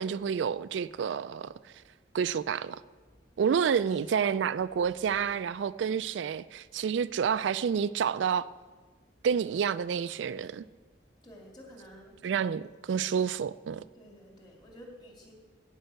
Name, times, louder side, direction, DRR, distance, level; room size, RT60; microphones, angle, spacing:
voice 1, 0.0-1.7 2.1-2.8 3.4-8.5 9.2-10.6 12.2-13.8, right 7 dB, 75° right, 0.3 m, -29 dB
voice 2, 3.4-4.2 11.2-12.2 13.9-15.3, equal, 25° left, 2.9 m, -51 dB
16.0 x 5.5 x 7.9 m
head